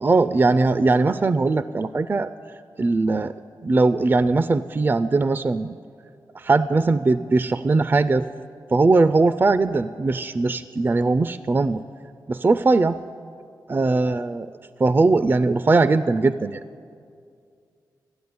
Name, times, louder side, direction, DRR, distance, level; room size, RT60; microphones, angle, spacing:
voice 1, 0.0-2.3 2.8-3.3 3.6-5.8 6.3-8.3 8.7-11.8 12.3-13.0 13.7-14.5 14.8-16.6, right 3 dB, 30° right, 13 dB, 0.3 m, -20 dB
13.5 x 8.0 x 9.4 m, 2.3 s
cardioid pair, 70°, 7 cm